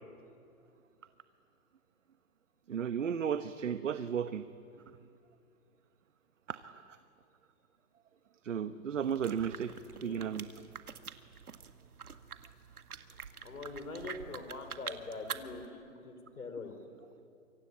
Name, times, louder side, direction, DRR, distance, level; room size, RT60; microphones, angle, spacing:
voice 1, 2.7-4.4 6.5-6.8 8.4-9.7 10.0-10.5, right 8 dB, 55° right, 11 dB, 1.1 m, -34 dB
sound 1, 9.0-15.7, right 7 dB, 85° right, 1.9 m, -47 dB
voice 2, 13.4-16.8, left 3 dB, 90° left, 7 dB, 5.3 m, -43 dB
27.5 x 24.5 x 8.7 m, 2.5 s
hypercardioid pair, 170°, 43 cm